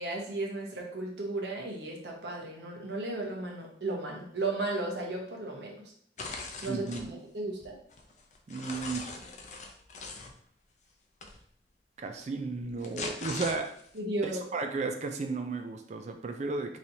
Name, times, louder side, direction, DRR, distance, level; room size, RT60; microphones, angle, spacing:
voice 1, 0.0-5.7 6.6-7.8 13.9-14.4, right 2 dB, 75° right, -1 dB, 1.0 m, -35 dB
sound 1, 6.2-7.1 7.6-10.3 11.2-11.4 12.6-14.0, left 3 dB, 45° left, 0.5 m, -41 dB
voice 2, 6.7-7.1 8.5-9.0 12.0-13.7 14.2-16.8, right 3 dB, 40° right, 5 dB, 0.3 m, -34 dB
4.1 x 3.2 x 2.7 m, 0.63 s
head